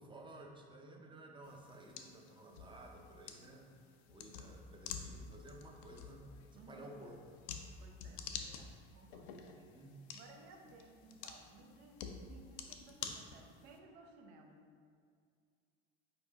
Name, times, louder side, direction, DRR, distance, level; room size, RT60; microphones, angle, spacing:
voice 1, 0.0-3.7 4.1-6.2 6.5-7.2 9.6-10.0, right 1 dB, 15° right, 1 dB, 0.6 m, -54 dB
sound 1, 1.4-13.8, left 6 dB, 70° left, 0.5 m, -50 dB
voice 2, 6.5-7.0 7.8-9.3 10.1-14.7, right 3 dB, 70° right, 2 dB, 0.7 m, -59 dB
4.3 x 4.2 x 2.8 m, 2.2 s
hypercardioid pair, 70°, 34 cm